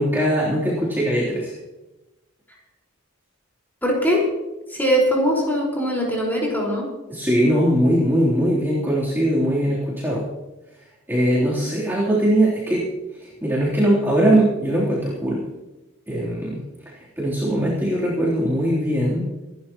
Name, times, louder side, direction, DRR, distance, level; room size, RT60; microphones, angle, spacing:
voice 1, 0.0-1.6 7.1-10.3 11.1-15.4 16.1-16.6 16.9-19.3, right 1 dB, 10° right, -8 dB, 3.4 m, -21 dB
voice 2, 3.8-4.2 4.7-6.9, equal, 10° left, -3 dB, 4.8 m, -21 dB
26.5 x 12.0 x 3.0 m, 1.0 s
head